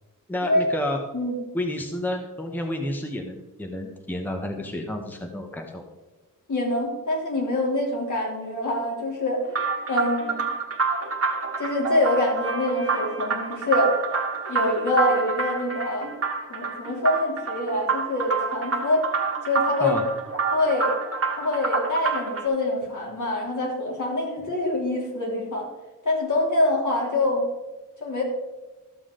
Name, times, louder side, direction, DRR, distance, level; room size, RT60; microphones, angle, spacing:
voice 1, 0.3-1.0 1.5-5.8 19.8-20.0, left 1 dB, 5° left, 3 dB, 0.9 m, -30 dB
voice 2, 6.5-9.5 9.9-10.4 11.6-14.0 14.4-16.1 16.5-19.0 19.4-20.0 20.5-20.9 21.4-25.7 26.0-27.5 28.0-28.2, left 1 dB, 65° left, -2 dB, 3.1 m, -25 dB
sound 1, 9.5-22.5, right 5 dB, 45° right, 1.5 m, -28 dB
13.5 x 7.1 x 3.8 m, 1.2 s
wide cardioid pair, 130°, 32 cm